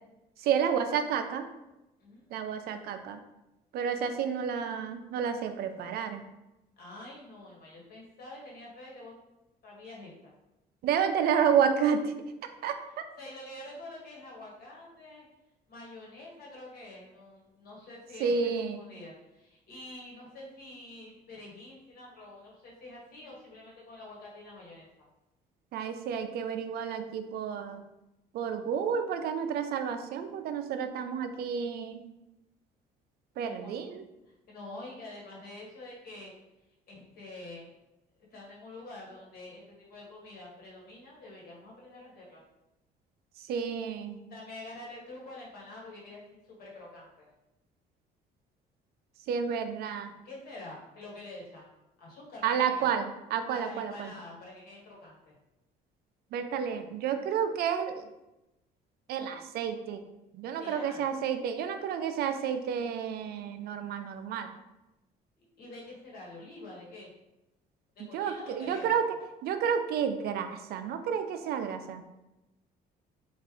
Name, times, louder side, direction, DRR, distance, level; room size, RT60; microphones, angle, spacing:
voice 1, 0.4-1.5 2.3-3.2 3.7-6.2 10.8-12.1 12.6-12.8 18.2-18.8 25.7-27.8 28.3-32.0 33.4-34.0 43.4-44.2 49.3-50.1 52.4-54.1 56.3-58.1 59.1-60.0 60.3-64.5 68.1-69.1 69.4-72.0, right 7 dB, 65° right, 8 dB, 0.4 m, -30 dB
voice 2, 6.8-9.1 9.6-10.3 13.2-15.3 15.7-24.9 33.4-33.8 34.3-36.3 36.9-37.7 38.3-42.4 44.3-47.3 50.2-51.7 52.0-52.9 53.5-55.3 60.6-61.1 65.4-67.1 67.9-69.0, left 2 dB, 65° left, -4 dB, 1.4 m, -47 dB
3.2 x 2.5 x 3.7 m, 0.94 s
cardioid pair, 110°, 17 cm